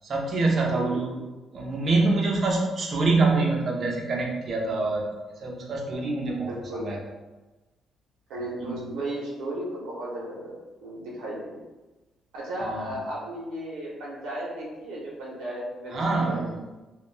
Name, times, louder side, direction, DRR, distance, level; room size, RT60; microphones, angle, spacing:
voice 1, 0.0-1.2 1.5-5.1 5.4-6.5 6.8-7.0 8.6-8.8 12.6-12.9 15.9-16.6, right 3 dB, 50° right, -1 dB, 0.6 m, -25 dB
voice 2, 0.7-1.1 6.5-6.8 8.3-10.5 10.8-11.6 12.3-16.5, right 1 dB, 90° right, -5 dB, 0.7 m, -35 dB
2.3 x 2.1 x 3.2 m, 1.1 s
cardioid pair, 90°, 0 cm